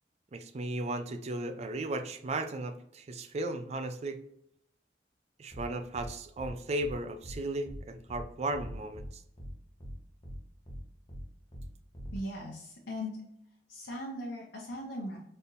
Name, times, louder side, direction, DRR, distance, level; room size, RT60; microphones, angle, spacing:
voice 1, 0.3-4.2 5.4-9.2, right 2 dB, 40° right, 9 dB, 0.4 m, -35 dB
sound 1, 5.5-5.6 5.9-6.1 6.4-6.5 6.8-6.9 7.2-7.4 7.7-7.8 8.1-8.2 8.5-9.1 9.4-9.5 9.8-9.9 10.2-10.4 10.7-10.8 11.1-11.2 11.5-11.6 11.9-12.2, equal, 30° left, 0.9 m, -43 dB
voice 2, 12.1-13.2 13.7-15.2, left 1 dB, 80° left, -4 dB, 1.0 m, -39 dB
4.2 x 3.5 x 2.5 m, 0.73 s
head